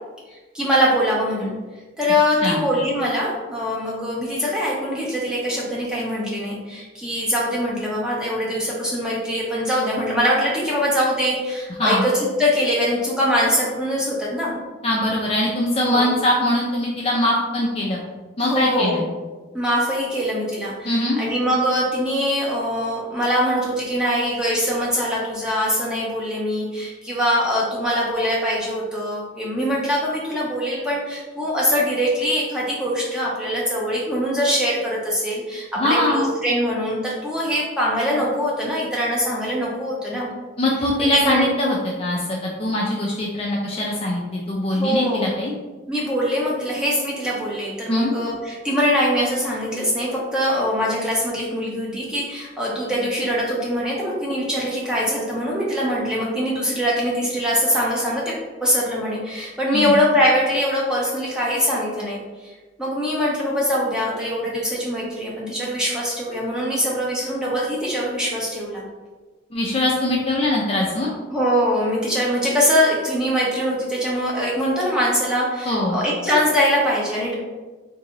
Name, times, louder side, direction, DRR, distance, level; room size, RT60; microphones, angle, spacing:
voice 1, 0.5-1.5 2.0-14.5 15.8-16.2 18.4-19.0 19.5-40.3 41.1-41.5 44.7-45.3 45.9-62.5 62.8-68.8 71.3-77.3, equal, 5° right, -5 dB, 0.8 m, -23 dB
voice 2, 14.8-18.0 18.4-19.0 20.8-21.2 35.8-36.3 40.6-45.5 47.9-48.1 59.7-59.9 69.5-71.1 75.7-76.0, left 1 dB, 30° left, -3 dB, 0.4 m, -22 dB
2.9 x 2.6 x 3.8 m, 1.2 s
head